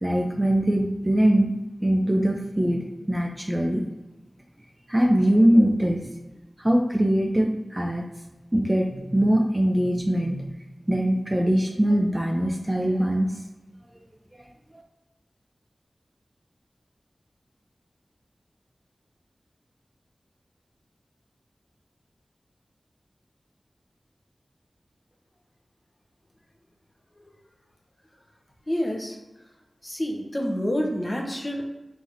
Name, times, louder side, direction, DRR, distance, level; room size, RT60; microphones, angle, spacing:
voice 1, 0.0-1.5 1.8-3.8 4.9-6.0 6.6-8.0 8.5-10.5 10.9-13.3, right 1 dB, 20° right, 1 dB, 0.4 m, -22 dB
voice 2, 28.7-29.2 29.8-31.7, equal, 25° left, 1 dB, 0.7 m, -28 dB
3.9 x 2.9 x 2.6 m, 1.0 s
wide cardioid pair, 55°, 0 cm